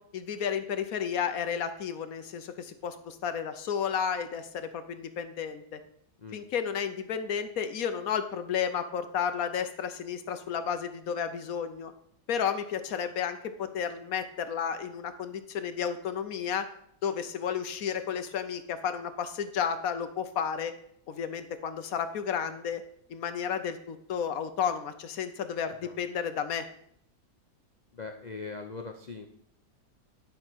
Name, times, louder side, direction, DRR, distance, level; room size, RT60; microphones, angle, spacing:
voice 1, 0.1-5.8 6.3-11.9 12.3-16.6 17.0-20.7 21.1-22.8 23.1-26.7, left 7 dB, 60° left, 9 dB, 1.1 m, -32 dB
voice 2, 27.9-29.3, left 4 dB, 80° left, 4 dB, 0.4 m, -41 dB
11.0 x 5.4 x 6.1 m, 0.70 s
omnidirectional pair, 1.9 m